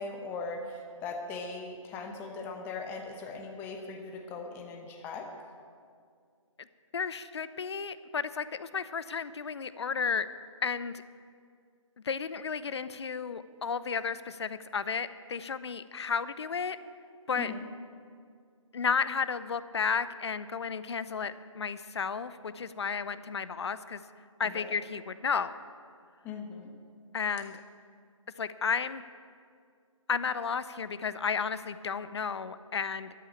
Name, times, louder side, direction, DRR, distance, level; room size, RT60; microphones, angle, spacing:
voice 1, 0.0-5.3 17.4-17.6 24.4-24.7 26.2-26.8, left 3 dB, 10° left, 4 dB, 1.0 m, -39 dB
voice 2, 6.9-10.3 10.6-11.0 12.0-16.8 17.3-17.5 18.7-24.0 24.4-25.6 27.1-27.6 28.4-29.0 30.1-33.1, left 6 dB, 55° left, 15 dB, 0.7 m, -33 dB
13.5 x 9.0 x 8.5 m, 2.2 s
figure-of-eight pair, 150°, 17 cm